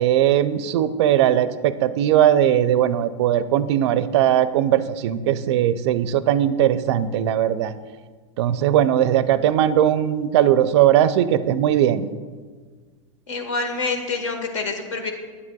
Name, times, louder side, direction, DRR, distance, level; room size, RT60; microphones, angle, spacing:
voice 1, 0.0-7.7 8.4-12.1, right 11 dB, 60° right, 14 dB, 0.4 m, -19 dB
voice 2, 13.3-15.1, left 4 dB, 75° left, 5 dB, 1.3 m, -26 dB
9.3 x 8.1 x 2.3 m, 1.5 s
hypercardioid pair, 115°, 16 cm